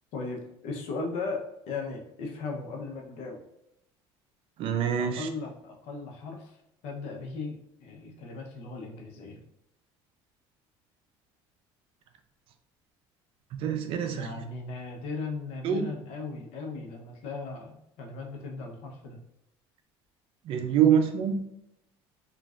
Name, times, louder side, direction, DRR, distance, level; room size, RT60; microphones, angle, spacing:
voice 1, 0.1-3.4 5.0-6.6 6.8-9.4 14.1-19.2, left 3 dB, 70° left, 2 dB, 0.7 m, -37 dB
voice 2, 4.6-5.3 13.5-14.3 15.6-15.9 20.5-21.5, right 8 dB, 55° right, 7 dB, 0.4 m, -25 dB
3.1 x 2.4 x 2.4 m, 0.80 s
cardioid pair, 120°, 11 cm